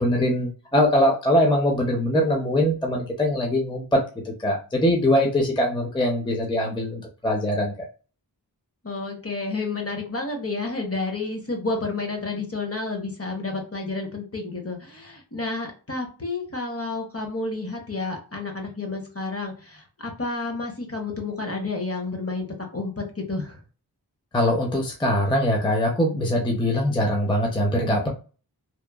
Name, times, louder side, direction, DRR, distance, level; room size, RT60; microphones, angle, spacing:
voice 1, 0.0-4.0 4.2-7.7 24.3-28.1, left 1 dB, 10° left, 0 dB, 0.6 m, -22 dB
voice 2, 8.8-22.5 22.7-23.6, left 3 dB, 35° left, 2 dB, 0.8 m, -30 dB
2.9 x 2.1 x 2.3 m, 0.37 s
wide cardioid pair, 50°, 39 cm